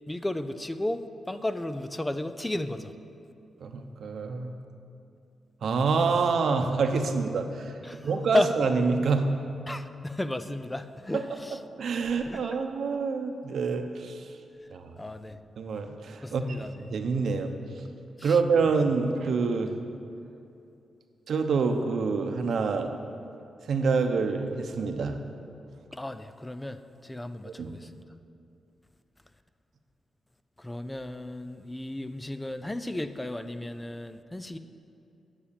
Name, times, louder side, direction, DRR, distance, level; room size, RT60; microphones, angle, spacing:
voice 1, 0.1-2.9 7.8-8.5 9.7-11.6 12.2-12.6 15.0-15.4 16.2-16.9 18.2-18.4 25.9-28.0 30.6-34.6, left 1 dB, 10° left, 11 dB, 0.5 m, -33 dB
voice 2, 3.6-4.5 5.6-7.7 8.0-9.2 11.1-11.2 11.8-14.3 14.7-14.9 15.6-16.4 16.9-17.5 18.2-19.7 21.3-22.9 23.6-25.2 27.4-27.7, right 4 dB, 70° right, 6 dB, 0.9 m, -27 dB
9.8 x 7.3 x 8.7 m, 2.6 s
cardioid pair, 95°, 0 cm